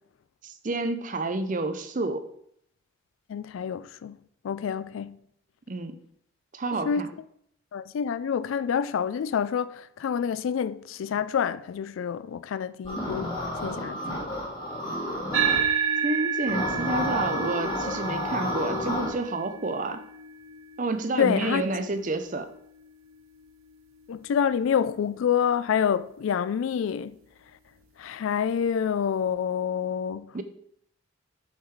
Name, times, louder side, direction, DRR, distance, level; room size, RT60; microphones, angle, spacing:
voice 1, 0.4-2.3 5.7-6.0 6.5-7.1 16.0-20.0 20.8-22.5 30.3-30.4, right 2 dB, 40° right, 0.5 m, -29 dB
voice 2, 3.3-4.2 4.4-5.2 6.7-7.1 7.7-13.3 13.6-14.2 21.2-21.6 24.1-27.1 28.0-30.4, left 7 dB, 75° left, 0.3 m, -27 dB
sound 1, 12.8-15.6 16.5-19.1, left 1 dB, 25° left, 1.6 m, -31 dB
sound 2, 15.3-24.1, right 7 dB, 85° right, 0.5 m, -32 dB
7.1 x 3.8 x 4.7 m
head